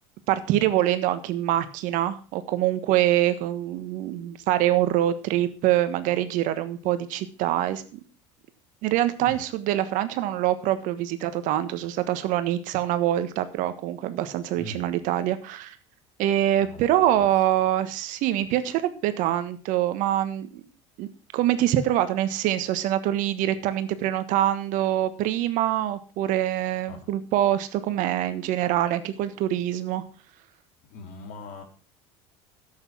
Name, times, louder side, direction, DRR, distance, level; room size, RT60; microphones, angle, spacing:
voice 1, 0.3-8.0 8.8-15.8 16.2-20.6 21.0-21.1 21.3-30.0, right 13 dB, 65° right, 11 dB, 1.4 m, -25 dB
voice 2, 30.9-31.6, left 2 dB, 60° left, 4 dB, 3.4 m, -39 dB
11.5 x 8.1 x 6.1 m, 0.39 s
hypercardioid pair, 80°, 15 cm